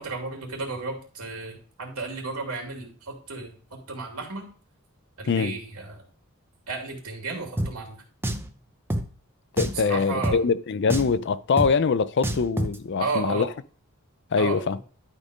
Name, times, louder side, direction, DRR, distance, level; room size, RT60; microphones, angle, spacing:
voice 1, 0.0-4.5 5.2-6.0 6.7-8.0 9.7-10.4 13.0-13.5 14.4-14.8, right 3 dB, 85° right, 2.8 m, -33 dB
voice 2, 5.3-5.6 9.6-13.5 14.3-14.8, left 5 dB, 55° left, 0.4 m, -23 dB
Drum, 7.6-7.7 8.2-8.5 8.9-9.0 9.6-9.8 10.2-10.4 10.9-11.2 11.6-11.7 12.2-12.8, right 1 dB, 10° right, 0.6 m, -27 dB
12.0 x 4.3 x 5.1 m
head